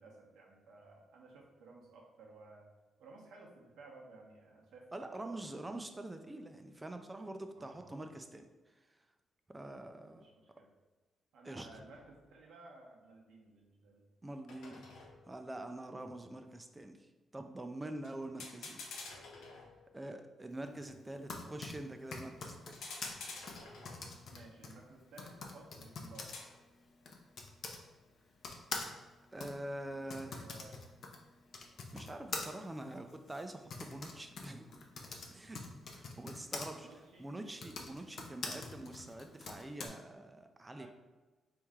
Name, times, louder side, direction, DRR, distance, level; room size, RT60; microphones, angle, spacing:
voice 1, 0.0-2.7 3.0-5.6 7.5-8.0 10.1-10.7 11.3-14.0 16.0-16.3 20.8-20.9 24.3-26.3 30.1-30.8 36.7-37.3 40.8-40.9, right 3 dB, 90° right, -1 dB, 1.0 m, -56 dB
voice 2, 4.9-8.5 9.5-10.2 11.4-11.7 14.2-14.9 15.3-17.1 17.3-18.9 19.2-19.3 19.9-22.7 29.3-30.4 31.9-34.9 35.3-36.9 37.2-40.9, right 1 dB, 15° right, 6 dB, 0.4 m, -45 dB
sound 1, 11.9-12.2 14.5-15.5 18.0-18.1 18.4-20.1 22.7-24.3 26.1-26.6, left 3 dB, 90° left, 0.8 m, -49 dB
Typing, 21.0-27.8 28.4-36.7 37.5-39.9, left 3 dB, 55° left, 0.6 m, -45 dB
4.2 x 3.1 x 3.6 m, 1.2 s
cardioid pair, 140°, 0 cm